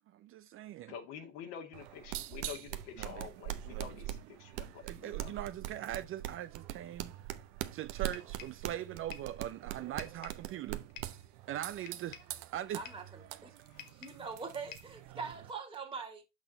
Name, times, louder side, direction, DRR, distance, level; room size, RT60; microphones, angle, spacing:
voice 1, 0.2-0.9 4.8-7.1 7.7-10.8 11.5-12.2 12.5-12.8, right 12 dB, 35° right, 0.5 m, -41 dB
voice 2, 0.9-5.3 7.0-7.1 13.6-13.9, left 7 dB, 65° left, 2.1 m, -48 dB
sound 1, 1.7-15.5, right 14 dB, 55° right, 1.0 m, -43 dB
sound 2, 8.1-8.6 9.1-9.4 10.0-10.5 11.0-11.2 11.9-12.4 12.8-13.1 13.8-14.3 14.7-15.0, left 9 dB, 85° left, 1.2 m, -50 dB
voice 3, 12.7-13.5 13.9-16.2, right 5 dB, 15° right, 2.1 m, -43 dB
6.1 x 5.9 x 3.9 m
hypercardioid pair, 95°, 38 cm